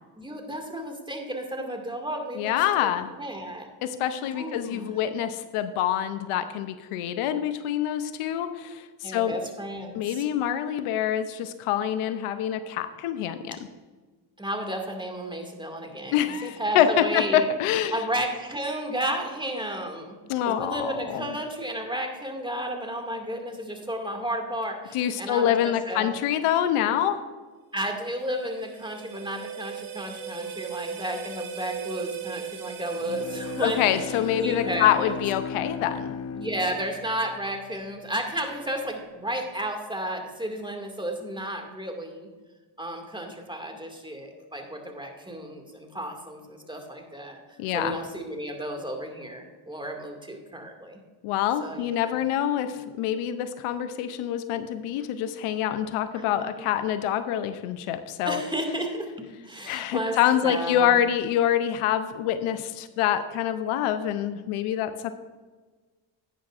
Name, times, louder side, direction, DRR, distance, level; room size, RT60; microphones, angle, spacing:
voice 1, 0.2-2.9 3.2-3.7 4.2-4.9 9.0-10.2 14.4-17.5 17.9-20.1 20.5-26.1 27.7-35.1 36.4-42.3 42.8-47.4 47.7-51.0 51.6-51.9 56.2-56.7 58.2-59.1 59.4-61.0, right 1 dB, 10° right, 3 dB, 2.1 m, -33 dB
voice 2, 2.4-3.1 3.8-9.4 9.9-13.6 16.1-18.0 20.3-21.2 24.9-27.2 33.6-36.2 47.6-48.0 51.2-58.4 59.7-65.1, left 10 dB, 80° left, 11 dB, 0.7 m, -26 dB
sound 1, 28.0-35.1, right 6 dB, 70° right, 1.4 m, -38 dB
Bowed string instrument, 33.0-38.1, left 6 dB, 35° left, 0.4 m, -36 dB
11.0 x 9.4 x 2.5 m, 1.3 s
supercardioid pair, 50°, 50 cm